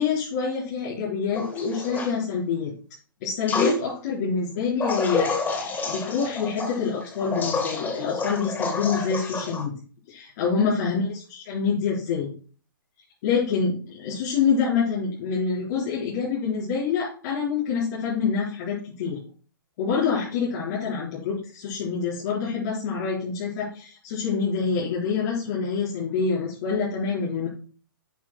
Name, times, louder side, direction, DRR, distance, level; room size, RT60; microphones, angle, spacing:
voice 1, 0.0-2.7 3.2-9.7 10.1-12.3 13.2-19.2 19.8-27.5, left 5 dB, 50° left, -8 dB, 4.7 m, -26 dB
sound 1, 1.3-2.1 3.5-3.8 4.8-9.6, left 3 dB, 15° left, 1.7 m, -28 dB
11.0 x 9.0 x 2.3 m, 0.40 s
hypercardioid pair, 125°, 12 cm